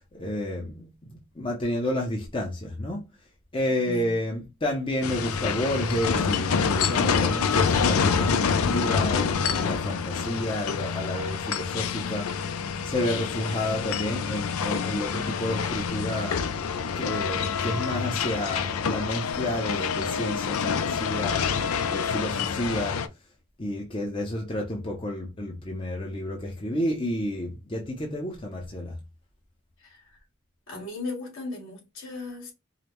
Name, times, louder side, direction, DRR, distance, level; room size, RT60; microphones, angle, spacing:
voice 1, 0.1-3.0 3.5-12.3 12.8-16.4 16.9-21.4 21.9-23.0 23.6-29.0, left 1 dB, 25° left, 0.6 m, -30 dB
voice 2, 3.7-4.2 29.8-30.2 30.7-32.5, left 3 dB, 70° left, 2.1 m, -37 dB
sound 1, 5.0-23.1, left 6 dB, 85° left, 0.4 m, -27 dB
4.9 x 2.0 x 2.9 m
head